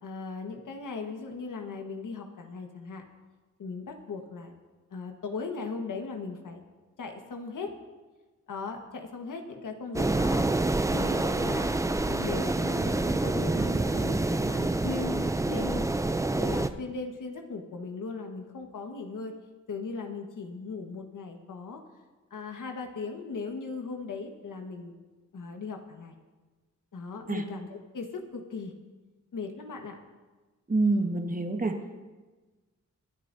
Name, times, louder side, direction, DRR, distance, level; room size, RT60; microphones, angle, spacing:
voice 1, 0.0-3.0 3.6-4.5 4.9-6.6 7.0-7.7 8.5-10.5 10.9-11.7 12.0-15.9 16.4-19.3 19.7-21.8 22.3-24.9 25.3-26.1 26.9-28.7 29.3-30.0, left 4 dB, 85° left, 3 dB, 1.5 m, -38 dB
sound 1, 9.9-16.7, right 2 dB, 10° right, 0.4 m, -27 dB
voice 2, 30.7-31.7, right 2 dB, 25° right, 4 dB, 1.3 m, -26 dB
25.5 x 9.7 x 2.7 m, 1.3 s
wide cardioid pair, 100°, 31 cm